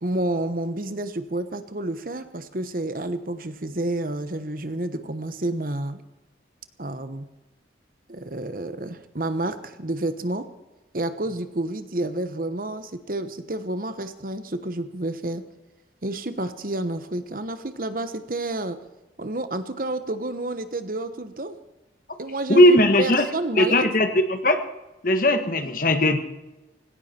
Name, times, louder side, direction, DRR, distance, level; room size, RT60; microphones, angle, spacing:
voice 1, 0.0-6.0 6.8-7.3 8.1-10.5 10.9-15.4 16.0-18.8 19.2-21.6 22.2-23.9, right 2 dB, 50° right, 11 dB, 1.1 m, -30 dB
voice 2, 22.5-23.3 23.6-24.6 25.0-26.2, left 1 dB, 50° left, 8 dB, 1.5 m, -18 dB
18.5 x 17.5 x 4.5 m, 1.0 s
head